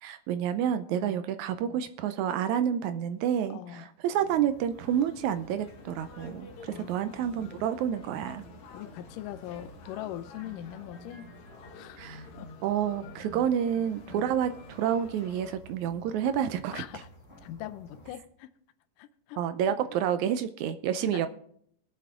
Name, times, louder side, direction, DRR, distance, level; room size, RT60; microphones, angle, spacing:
voice 1, 0.0-8.4 12.0-12.2 12.6-16.8 19.4-21.3, right 9 dB, 80° right, 11 dB, 1.7 m, -29 dB
voice 2, 3.5-3.9 6.7-7.7 8.7-11.3 11.7-12.5 16.7-17.1 17.4-18.5 19.0-19.4 19.7-19.8 21.0-21.3, left 12 dB, 80° left, 10 dB, 2.2 m, -42 dB
sound 1, 4.1-18.1, right 1 dB, 20° left, 2.7 m, -54 dB
sound 2, 4.9-15.6, left 3 dB, 65° left, 2.4 m, -49 dB
21.0 x 7.9 x 3.7 m, 0.66 s
omnidirectional pair, 3.8 m